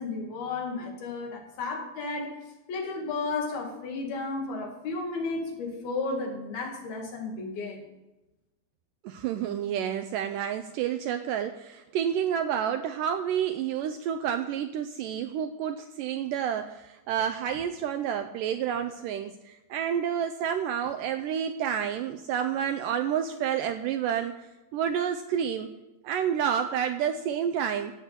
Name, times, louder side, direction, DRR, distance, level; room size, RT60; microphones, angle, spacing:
voice 1, 0.0-2.4 2.7-7.8, left 3 dB, 80° left, 1 dB, 4.0 m, -33 dB
voice 2, 9.0-24.4 24.7-25.7 26.0-27.9, right 9 dB, 85° right, 7 dB, 1.9 m, -29 dB
14.5 x 6.0 x 7.9 m, 1.0 s
omnidirectional pair, 4.3 m